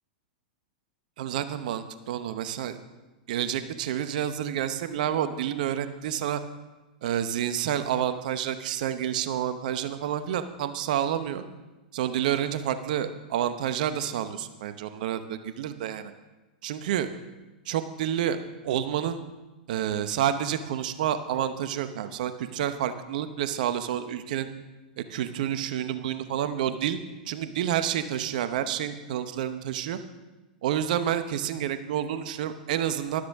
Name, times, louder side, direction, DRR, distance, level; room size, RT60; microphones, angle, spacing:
voice 1, 1.2-2.8 3.3-6.4 7.0-11.4 11.9-16.1 16.6-17.1 17.7-18.4 18.6-19.2 19.7-24.5 25.0-27.0 27.3-30.0 30.6-33.2, right 10 dB, 60° right, 11 dB, 0.8 m, -29 dB
12.5 x 12.0 x 3.6 m, 1.1 s
hypercardioid pair, 105°, 5 cm